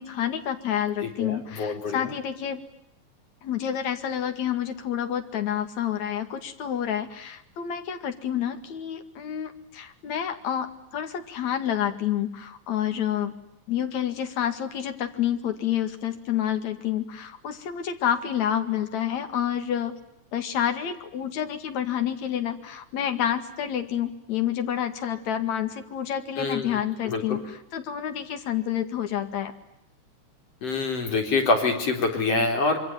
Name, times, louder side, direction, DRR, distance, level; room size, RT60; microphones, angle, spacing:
voice 1, 0.0-2.6 3.4-13.3 13.7-19.9 20.3-29.5, left 10 dB, 70° left, 7 dB, 3.4 m, -29 dB
voice 2, 1.0-2.1 26.4-26.8 27.0-27.4 30.6-32.8, left 3 dB, 55° left, 4 dB, 4.9 m, -26 dB
26.5 x 24.5 x 9.3 m, 0.79 s
omnidirectional pair, 3.3 m